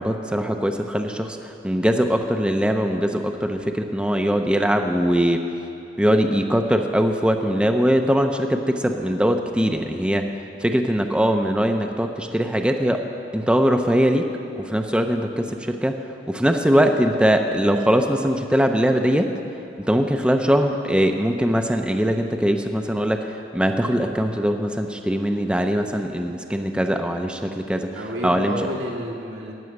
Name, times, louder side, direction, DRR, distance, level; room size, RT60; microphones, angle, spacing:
voice 1, 0.0-5.4 6.0-10.3 10.6-13.0 13.3-14.2 14.6-15.9 16.3-19.3 19.8-27.9 28.2-28.6, equal, 5° right, 4 dB, 0.6 m, -21 dB
voice 2, 27.9-29.5, equal, 85° right, -2 dB, 2.4 m, -30 dB
16.5 x 6.3 x 9.4 m, 2.7 s
head